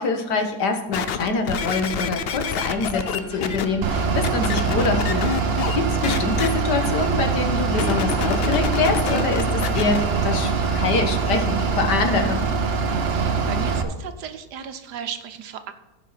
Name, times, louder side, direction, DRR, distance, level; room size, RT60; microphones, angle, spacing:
voice 1, 0.0-12.5, left 4 dB, 90° left, 5 dB, 1.9 m, -25 dB
sound 1, 0.9-3.7 4.2-5.8 6.0-6.5 7.7-10.0 10.7-10.8, left 7 dB, 65° left, 0.6 m, -27 dB
sound 2, 2.6-12.3, equal, 20° left, 3.1 m, -39 dB
Bus / Idling, 3.8-13.8, right 4 dB, 45° right, 1.0 m, -23 dB
voice 2, 13.1-15.7, right 8 dB, 85° right, 8 dB, 1.5 m, -35 dB
15.5 x 5.5 x 4.1 m, 1.2 s
omnidirectional pair, 1.7 m